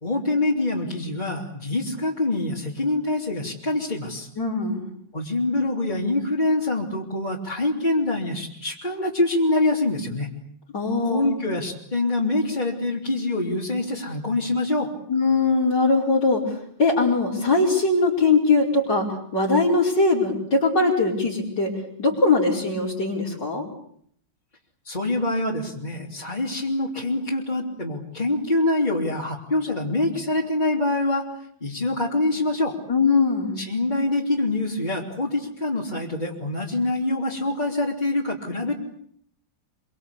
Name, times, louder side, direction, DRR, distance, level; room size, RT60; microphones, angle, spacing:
voice 1, 0.0-4.3 5.1-10.3 11.0-14.9 24.8-31.3 31.6-32.8 33.6-38.7, left 2 dB, 25° left, -4 dB, 3.4 m, -25 dB
voice 2, 4.4-4.8 10.7-11.4 15.1-16.4 16.8-21.7 22.0-23.7 32.9-33.6, left 3 dB, 65° left, -6 dB, 5.5 m, -21 dB
26.5 x 24.5 x 8.4 m, 0.66 s
omnidirectional pair, 2.1 m